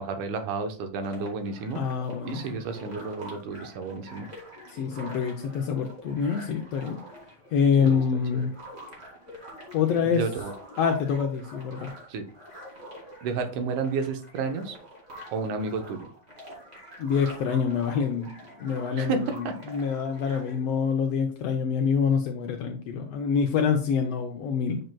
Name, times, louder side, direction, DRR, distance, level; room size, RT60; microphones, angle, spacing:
voice 1, 0.0-1.8 2.2-4.3 7.8-8.0 10.0-10.5 12.1-12.3 13.2-14.8 15.3-16.1 19.0-19.5, right 4 dB, 80° right, 7 dB, 2.4 m, -31 dB
sound 1, 1.0-20.6, equal, 25° right, 2.1 m, -46 dB
voice 2, 1.7-2.6 4.7-7.0 7.5-8.5 9.7-10.2 10.8-11.9 17.0-18.3 18.6-24.8, left 6 dB, 80° left, 4 dB, 1.4 m, -26 dB
8.8 x 6.5 x 2.2 m, 0.42 s
omnidirectional pair, 3.6 m